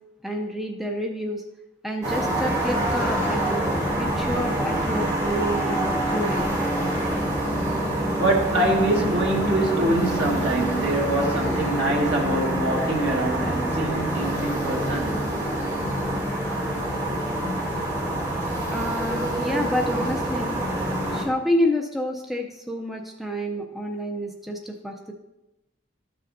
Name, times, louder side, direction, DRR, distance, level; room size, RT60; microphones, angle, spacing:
voice 1, 0.2-1.4 1.8-3.7 4.0-6.5 18.7-20.6 21.1-25.1, equal, ahead, 0.5 m, -29 dB
sound 1, 2.0-21.2, right 1 dB, 20° right, 2.7 m, -26 dB
voice 2, 8.2-15.3, right 1 dB, 65° right, 1.6 m, -25 dB
13.0 x 6.6 x 2.6 m
head